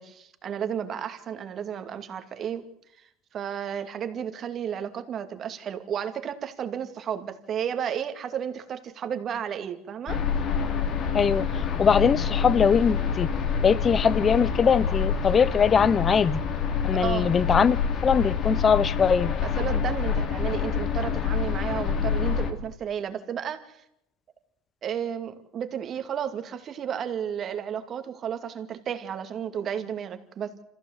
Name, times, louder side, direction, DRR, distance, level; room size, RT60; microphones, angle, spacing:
voice 1, 0.0-2.6 3.0-10.2 16.9-17.4 19.4-23.8 24.8-30.6, right 8 dB, 40° right, 2.4 m, -33 dB
Space Hulk Reactor Tunnel, 10.1-22.5, left 6 dB, 50° left, 2.8 m, -27 dB
voice 2, 11.1-13.3 13.6-16.4 16.8-17.8 18.0-19.3, left 6 dB, 30° left, 0.9 m, -21 dB
26.0 x 15.5 x 8.1 m
supercardioid pair, 95°, 0 cm